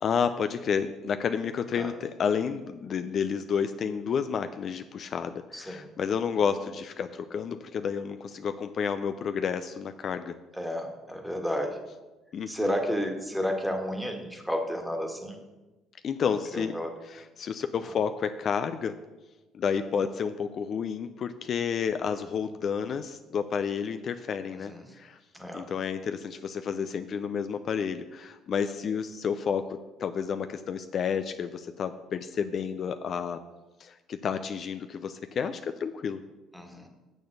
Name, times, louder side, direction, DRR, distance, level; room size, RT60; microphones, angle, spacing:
voice 1, 0.0-10.3 12.3-12.8 16.0-16.7 17.0-19.0 19.5-25.2 25.5-33.4 33.8-36.2, left 7 dB, 50° left, 9 dB, 0.4 m, -30 dB
voice 2, 5.5-5.9 10.5-11.8 12.5-15.4 16.5-17.0 24.5-24.9 25.3-25.7 36.5-36.9, equal, ahead, 4 dB, 1.6 m, -32 dB
6.8 x 6.3 x 6.5 m, 1.1 s
supercardioid pair, 75°, 0 cm